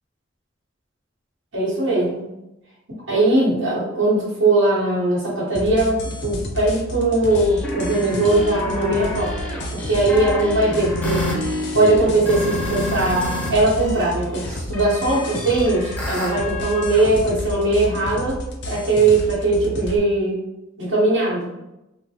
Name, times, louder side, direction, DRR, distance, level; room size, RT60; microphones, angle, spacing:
voice 1, 1.5-2.2 3.1-9.3 9.7-11.3 11.7-18.4 18.6-20.4 20.8-21.5, right 2 dB, 85° right, -10 dB, 1.3 m, -20 dB
sound 1, 5.5-20.0, left 1 dB, 60° left, 0.5 m, -31 dB
sound 2, 7.3-13.5 13.8-17.1, left 1 dB, 10° left, 0.5 m, -29 dB
3.6 x 2.2 x 2.8 m, 0.92 s
head